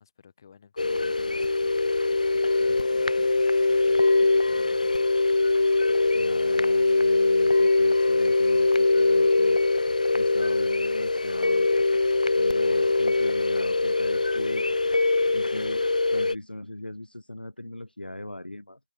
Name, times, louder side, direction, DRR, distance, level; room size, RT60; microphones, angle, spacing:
voice 1, 0.0-3.3 3.6-4.9, left 7 dB, 25° left, 8.0 m, -55 dB
sound 1, 0.8-16.4, left 3 dB, 50° left, 0.8 m, -22 dB
voice 2, 6.1-9.6 10.1-11.7 12.3-14.7 15.3-18.8, left 1 dB, 75° left, 1.9 m, -39 dB
figure-of-eight pair, 160°, 5 cm